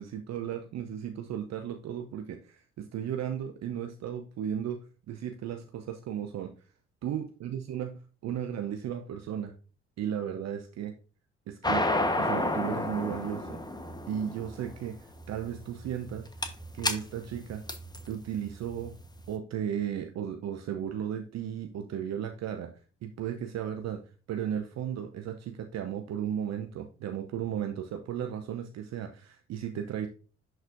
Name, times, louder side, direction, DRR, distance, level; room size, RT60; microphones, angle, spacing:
voice 1, 0.0-6.5 7.0-9.6 10.0-10.9 11.5-11.9 12.2-13.6 14.1-16.3 16.7-17.6 18.1-19.0 19.3-30.1, right 9 dB, 55° right, 6 dB, 0.7 m, -35 dB
sound 1, 11.6-19.2, left 2 dB, 10° left, 1.1 m, -31 dB
11.0 x 4.1 x 2.6 m, 0.37 s
hypercardioid pair, 45°, 32 cm